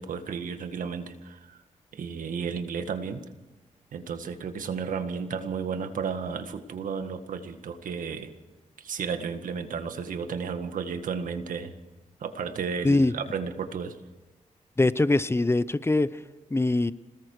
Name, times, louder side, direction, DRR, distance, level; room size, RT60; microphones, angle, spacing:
voice 1, 0.0-1.6 1.9-3.2 3.9-8.3 8.8-11.7 12.2-14.0, right 6 dB, 90° right, 8 dB, 1.8 m, -33 dB
voice 2, 14.8-16.2 16.5-16.9, left 2 dB, 20° left, 16 dB, 0.7 m, -22 dB
27.5 x 20.0 x 4.8 m, 1.1 s
cardioid pair, 80°, 13 cm